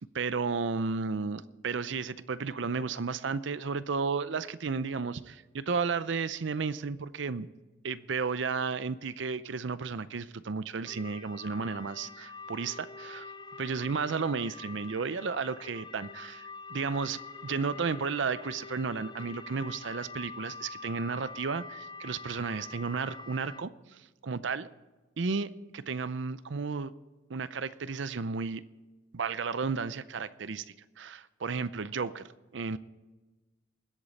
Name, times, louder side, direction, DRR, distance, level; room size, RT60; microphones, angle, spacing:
voice 1, 0.1-7.5 7.8-13.3 13.6-24.7 25.2-26.9 27.3-28.6 29.1-30.6 31.0-32.2 32.5-32.8, right 5 dB, 65° right, 15 dB, 0.5 m, -33 dB
sound 1, 10.9-23.6, left 4 dB, 20° left, 0.4 m, -45 dB
20.5 x 8.3 x 4.2 m, 1.2 s
head